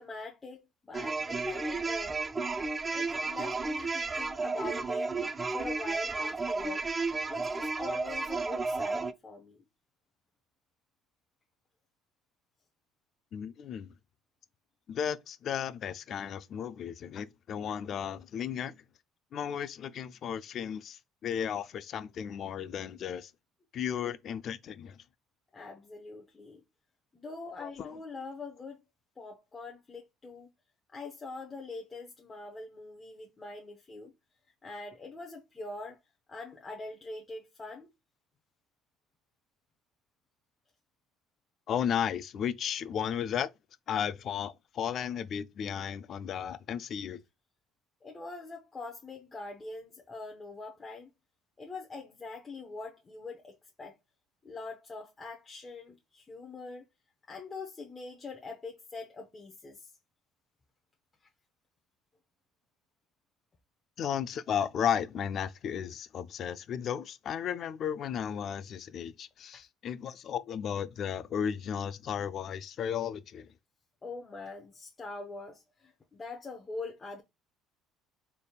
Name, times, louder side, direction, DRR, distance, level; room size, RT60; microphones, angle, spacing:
voice 1, 0.0-2.2 2.9-5.1 5.5-6.9 7.2-9.6 25.5-26.6 27.1-28.8 29.2-30.5 30.9-34.1 34.6-36.0 36.3-37.9 48.0-51.1 51.6-54.0 54.4-56.8 57.3-59.9 69.5-69.6 74.0-77.2, left 3 dB, 25° left, 0.8 m, -43 dB
sound 1, 0.9-9.1, right 3 dB, 25° right, 0.4 m, -33 dB
voice 2, 13.3-13.9 14.9-18.7 19.3-23.3 23.7-25.0 27.6-28.0 41.7-43.5 43.9-47.2 64.0-73.5, left 8 dB, 55° left, 0.4 m, -34 dB
4.0 x 3.4 x 2.2 m
supercardioid pair, 90°, 0 cm